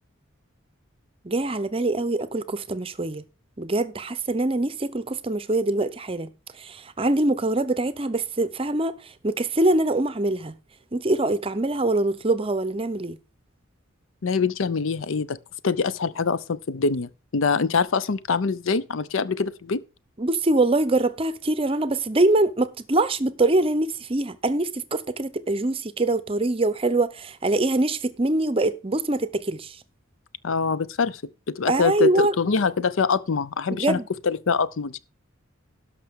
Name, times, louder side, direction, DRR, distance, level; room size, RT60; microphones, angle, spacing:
voice 1, 1.2-3.2 3.6-10.5 10.9-13.2 20.2-29.8 31.7-32.3 33.7-34.1, right 2 dB, 25° right, 0.7 m, -24 dB
voice 2, 14.2-15.4 15.6-19.8 30.4-31.2 31.5-34.0 34.2-35.0, left 5 dB, 70° left, 0.6 m, -24 dB
18.0 x 5.9 x 3.6 m
head